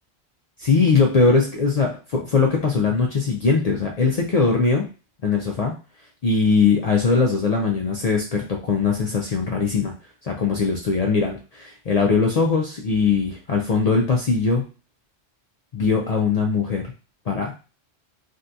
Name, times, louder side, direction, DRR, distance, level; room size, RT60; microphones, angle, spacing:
voice 1, 0.6-4.9 5.2-5.7 6.2-9.9 10.2-14.6 15.7-16.8 17.3-17.5, left 4 dB, 60° left, 1 dB, 0.4 m, -20 dB
3.5 x 2.2 x 2.6 m, 0.33 s
omnidirectional pair, 1.1 m